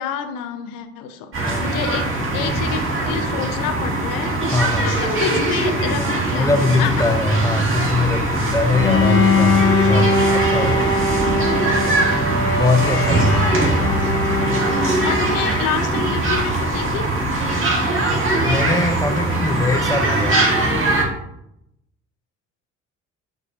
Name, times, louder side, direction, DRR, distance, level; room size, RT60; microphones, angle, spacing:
voice 1, 0.0-4.4 4.8-7.1 11.2-11.6 15.0-17.1, left 7 dB, 65° left, 8 dB, 0.7 m, -28 dB
sound 1, 1.3-21.0, right 2 dB, 35° right, 1.5 m, -21 dB
voice 2, 1.4-1.8 4.5-4.9 6.3-11.0 12.5-14.0 18.4-20.3, left 2 dB, 10° left, 5 dB, 0.7 m, -21 dB
Bowed string instrument, 8.8-15.5, left 3 dB, 35° left, 1.0 m, -21 dB
5.9 x 2.8 x 2.8 m, 0.80 s
hypercardioid pair, 55°, 35 cm